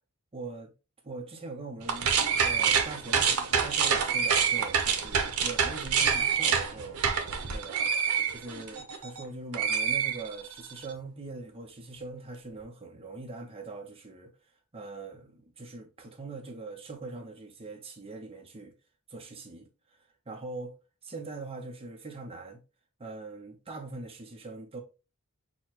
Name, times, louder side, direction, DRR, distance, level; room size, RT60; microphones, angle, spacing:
voice 1, 0.3-0.7 1.0-2.1 2.4-7.0 7.3-14.3 14.7-18.7 19.1-19.7 20.3-20.7 21.0-22.6 23.0-24.8, right 3 dB, 25° right, 0.7 m, -42 dB
sound 1, 1.8-9.2 9.5-10.7, right 6 dB, 80° right, 0.7 m, -27 dB
6.1 x 2.2 x 2.9 m
head